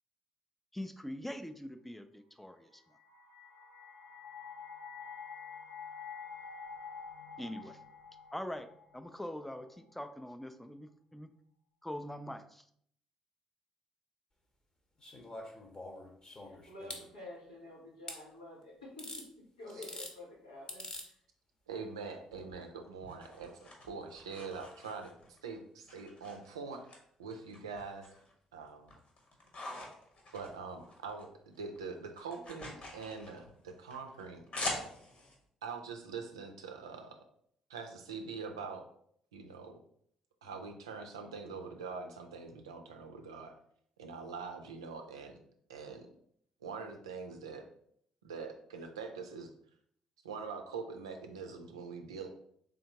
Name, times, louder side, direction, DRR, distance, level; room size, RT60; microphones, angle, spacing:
voice 1, 0.7-2.8 7.4-7.8 8.3-8.7 8.9-11.3 11.8-12.7, left 1 dB, 5° left, 8 dB, 0.4 m, -43 dB
sound 1, 2.7-9.8, left 5 dB, 70° left, 0.6 m, -48 dB
sound 2, 15.0-17.0 18.1-18.2 19.0-19.3 19.7-20.1 20.7-21.1 22.3-22.4, left 1 dB, 30° left, 0.9 m, -45 dB
voice 2, 16.4-21.2, left 1 dB, 90° left, -5 dB, 1.0 m, -50 dB
voice 3, 21.7-25.1 25.4-26.9 27.2-28.1 28.5-28.9 30.3-34.9 35.6-37.2 37.7-38.8 39.3-39.8 40.4-43.5 44.0-45.4 45.7-46.1 46.6-47.6 48.2-49.5 50.2-52.3, right 5 dB, 85° right, 4 dB, 0.4 m, -44 dB
sound 3, 22.5-25.4 25.9-27.0 27.3-28.3 28.7-31.3 31.5-35.4, left 2 dB, 50° left, 1.1 m, -44 dB
3.6 x 3.4 x 2.8 m, 0.66 s
figure-of-eight pair, 45°, 3 cm